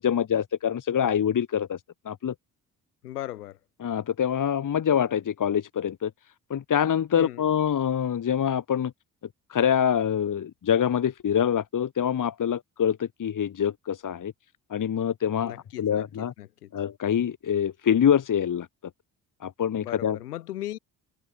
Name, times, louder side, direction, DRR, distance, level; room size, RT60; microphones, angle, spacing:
voice 1, 0.0-1.8 2.1-2.3 3.8-6.1 6.5-8.9 9.5-14.3 14.7-16.3 16.7-18.7 19.4-20.2, left 8 dB, 40° left, 2.3 m, -25 dB
voice 2, 3.0-3.6 7.1-7.5 15.4-16.7 19.8-20.8, left 14 dB, 80° left, 6.5 m, -38 dB
figure-of-eight pair, 45°, 45 cm